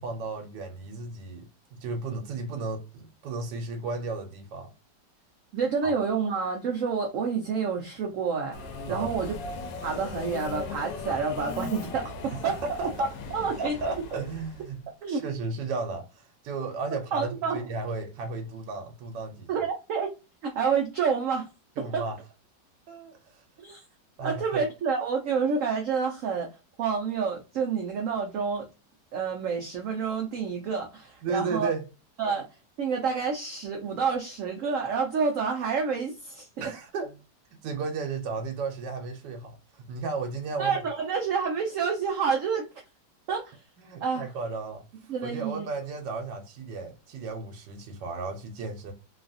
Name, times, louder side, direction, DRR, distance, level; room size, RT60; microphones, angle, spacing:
voice 1, 0.0-4.7 5.8-5.9 8.9-9.1 12.3-13.1 13.6-14.8 15.1-19.5 21.8-22.2 22.9-23.4 24.2-24.6 31.2-31.8 36.6-37.1 37.6-40.8 43.8-48.9, right 4 dB, 85° right, 1.3 m, -34 dB
voice 2, 5.5-9.3 9.8-12.6 13.0-13.8 15.0-15.2 17.1-17.6 19.5-20.1 20.4-21.5 21.9-22.0 23.6-23.8 24.2-26.5 26.8-28.7 29.1-31.7 32.2-32.4 32.8-36.7 40.6-42.7 43.3-43.6 44.0-44.2 45.1-45.7, right 5 dB, 65° right, 0.8 m, -28 dB
Subway metro underground, 8.5-14.8, left 4 dB, 85° left, 1.3 m, -38 dB
3.1 x 2.3 x 2.5 m
omnidirectional pair, 1.9 m